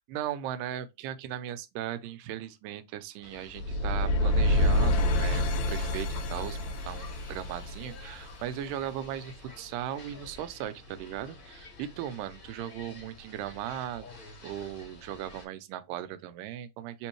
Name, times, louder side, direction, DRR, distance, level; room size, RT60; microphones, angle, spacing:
voice 1, 0.1-14.1 14.4-17.1, right 11 dB, 85° right, 2.2 m, -38 dB
sound 1, 3.2-15.4, left 2 dB, 40° left, 1.2 m, -50 dB
sound 2, 3.5-8.6, left 1 dB, 75° left, 1.7 m, -27 dB
4.4 x 3.5 x 3.0 m
omnidirectional pair, 3.8 m